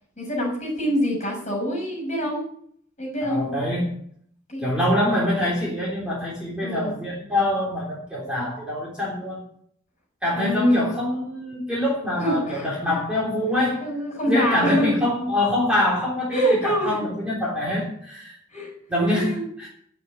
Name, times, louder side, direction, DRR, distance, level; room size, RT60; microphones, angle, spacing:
voice 1, 0.2-2.4 3.0-3.5 4.5-4.7 6.6-7.0 10.4-10.9 12.2-12.9 13.8-15.0 16.3-17.0 18.5-19.4, equal, 35° left, 0 dB, 6.4 m, -25 dB
voice 2, 3.2-3.9 4.6-9.4 10.2-13.9 14.3-18.4 18.9-19.7, left 1 dB, 5° right, -6 dB, 3.5 m, -25 dB
9.0 x 8.8 x 9.7 m, 0.64 s
head